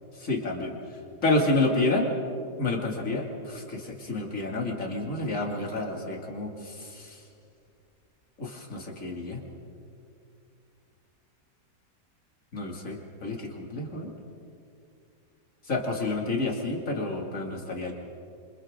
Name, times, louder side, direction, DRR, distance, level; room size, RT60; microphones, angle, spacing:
voice 1, 0.2-0.7 1.2-2.1 2.6-7.2 8.4-9.4 12.5-14.1 15.7-17.9, left 2 dB, 50° left, 0 dB, 3.0 m, -29 dB
28.0 x 25.5 x 3.8 m, 2.5 s
omnidirectional pair, 1.8 m